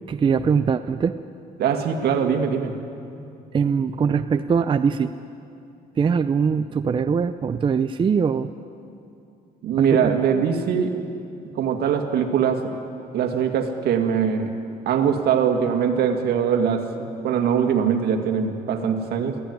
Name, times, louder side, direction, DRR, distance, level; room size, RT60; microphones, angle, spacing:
voice 1, 0.1-1.2 3.5-5.1 6.0-8.5 9.8-10.1, right 6 dB, 30° right, 9 dB, 0.6 m, -22 dB
voice 2, 1.6-2.8 9.6-11.0 11.6-12.7 13.1-14.5 14.9-19.4, right 7 dB, 70° right, 5 dB, 2.2 m, -22 dB
23.5 x 15.5 x 9.5 m, 2.6 s
cardioid pair, 110°, 17 cm